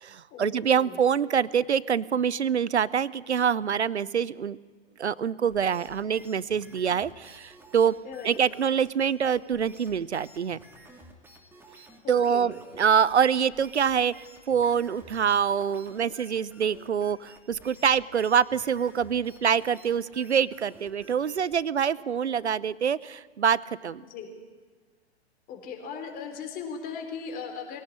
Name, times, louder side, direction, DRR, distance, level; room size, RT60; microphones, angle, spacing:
voice 1, 0.0-4.6 5.0-7.9 8.2-10.6 12.1-14.1 14.5-24.0, right 7 dB, 75° right, 21 dB, 0.8 m, -25 dB
sound 1, 5.5-21.6, right 1 dB, 5° right, 2.6 m, -52 dB
voice 2, 8.0-8.4 12.0-12.5 24.0-24.3 25.5-27.8, left 6 dB, 25° left, 4 dB, 3.7 m, -38 dB
21.5 x 17.0 x 8.7 m, 1.5 s
figure-of-eight pair, 110°, 34 cm